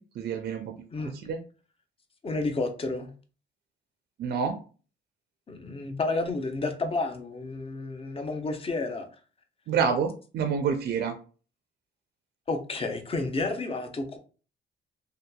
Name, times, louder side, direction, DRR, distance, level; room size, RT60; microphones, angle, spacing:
voice 1, 0.0-0.7 1.1-1.4 4.2-4.6 9.7-11.1, right 6 dB, 55° right, 0.4 m, -28 dB
voice 2, 2.2-3.1 5.5-9.1 12.5-14.2, left 3 dB, 30° left, 0.5 m, -31 dB
2.7 x 2.3 x 2.2 m
cardioid pair, 90°, 20 cm